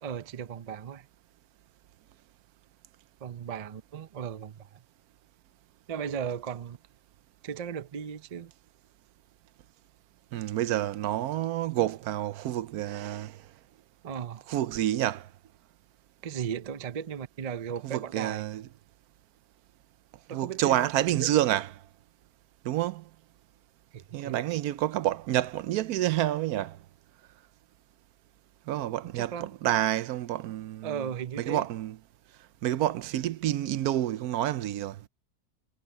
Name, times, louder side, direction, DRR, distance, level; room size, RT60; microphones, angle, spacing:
voice 1, 0.0-1.1 3.2-4.8 5.9-6.8 7.4-8.5 14.0-14.5 16.2-18.5 20.3-21.3 23.9-24.4 28.8-29.5 30.8-31.7, right 8 dB, 60° right, 0.4 m, -36 dB
voice 2, 10.3-13.4 14.5-15.3 17.8-18.6 20.3-21.7 22.6-23.0 24.1-26.8 28.7-31.1 31.4-32.0 32.6-35.0, right 13 dB, 85° right, 1.1 m, -28 dB
omnidirectional pair, 1.6 m